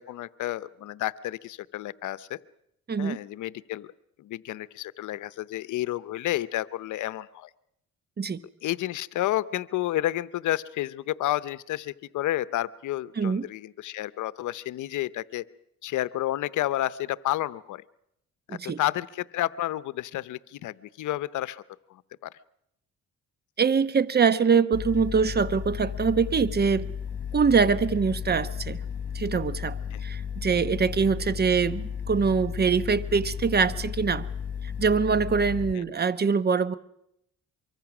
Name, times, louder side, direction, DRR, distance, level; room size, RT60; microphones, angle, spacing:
voice 1, 0.0-2.4 3.0-3.9 4.2-7.5 8.6-15.4 15.8-17.8 18.5-21.6 21.9-22.3 29.9-30.0 35.7-35.8, left 14 dB, 80° left, 17 dB, 0.8 m, -31 dB
voice 2, 13.2-13.5 18.5-18.8 23.6-26.9 27.3-28.8 29.1-34.3 34.8-36.7, right 5 dB, 35° right, 15 dB, 1.0 m, -24 dB
sound 1, 24.7-35.7, left 7 dB, 40° left, 4.4 m, -34 dB
24.0 x 24.0 x 6.1 m, 0.77 s
cardioid pair, 90°, 30 cm